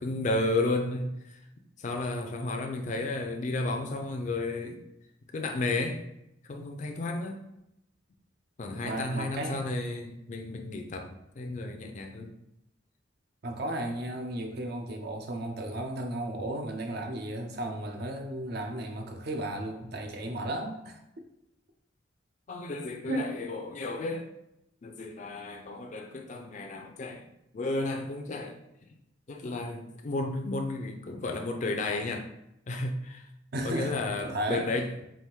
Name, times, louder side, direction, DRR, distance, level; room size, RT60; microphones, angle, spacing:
voice 1, 0.0-1.4 1.8-4.8 5.3-6.1 6.4-7.4 8.6-12.3 22.5-24.3 24.8-27.3 27.5-28.6 29.3-32.3 32.7-33.3 33.6-34.9, left 2 dB, 40° left, 4 dB, 0.4 m, -33 dB
voice 2, 8.8-9.6 13.4-21.0 23.1-23.3 33.5-34.7, right 1 dB, 55° right, 4 dB, 0.6 m, -34 dB
3.5 x 2.5 x 4.4 m, 0.84 s
head